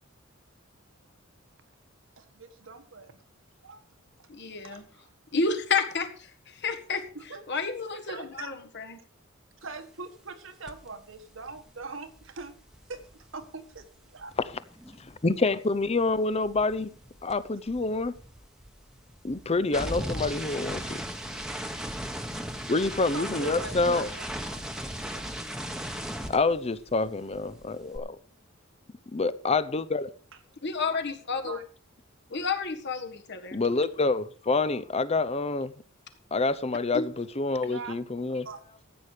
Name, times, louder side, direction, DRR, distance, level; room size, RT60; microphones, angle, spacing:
voice 1, 2.2-3.2 3.6-3.8 4.6-5.1 7.1-7.4 7.9-8.5 9.6-12.5 12.9-13.0 13.3-13.9 14.1-14.3 22.8-25.2 31.5-31.6 37.6-38.0 38.4-38.6, right 4 dB, 65° right, 1.6 m, -42 dB
voice 2, 4.3-4.9 5.3-6.1 6.6-7.1 7.5-9.0 30.6-31.6 32.3-33.6 36.9-37.1, left 4 dB, 55° left, 1.7 m, -30 dB
sound 1, 10.7-10.9 11.1-15.5 15.8-27.1 27.3-28.0, equal, 5° right, 1.1 m, -38 dB
voice 3, 15.2-16.9 17.2-18.1 19.2-21.0 22.7-24.1 26.3-28.2 29.1-30.1 33.5-35.7 36.3-38.5, left 3 dB, 30° left, 0.7 m, -27 dB
14.5 x 8.4 x 5.0 m
head